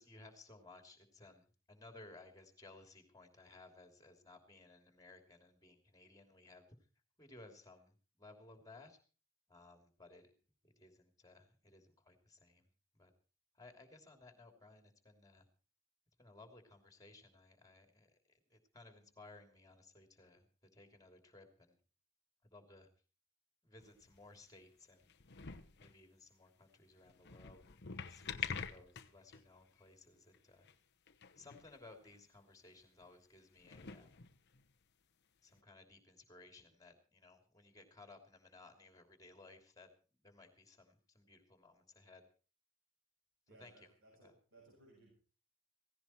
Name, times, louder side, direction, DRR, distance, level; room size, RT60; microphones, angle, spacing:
voice 1, 0.0-6.7 7.2-7.9 8.2-9.0 9.5-10.3 10.6-12.6 12.9-13.1 13.6-15.4 16.2-20.5 20.7-21.8 22.4-22.9 23.6-30.7 31.4-34.2 35.4-39.9 40.2-42.3 43.6-43.9 44.2-44.3, left 2 dB, 15° left, 7 dB, 3.0 m, -60 dB
sound 1, 23.8-24.4 25.0-25.9 27.1-29.5 29.8-29.9 30.3-30.4 30.6-30.8 31.1-31.8 32.0-32.2 33.0-33.1 33.6-34.7 35.6-35.7, left 7 dB, 50° left, 1.0 m, -47 dB
voice 2, 43.5-45.1, right 2 dB, 60° right, -2 dB, 7.4 m, -63 dB
17.0 x 16.5 x 4.5 m, 0.36 s
head